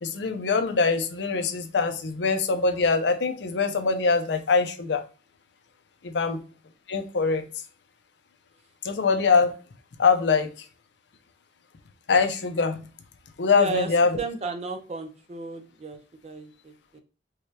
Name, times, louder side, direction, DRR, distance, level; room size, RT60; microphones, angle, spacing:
voice 1, 0.0-5.0 6.0-6.4 6.9-7.4 8.8-9.5 10.0-10.5 12.1-12.8 13.4-14.2, left 4 dB, 65° left, 7 dB, 0.5 m, -23 dB
voice 2, 13.5-13.9 14.2-17.0, right 3 dB, 35° right, 6 dB, 0.5 m, -34 dB
4.8 x 2.2 x 2.8 m, 0.35 s
head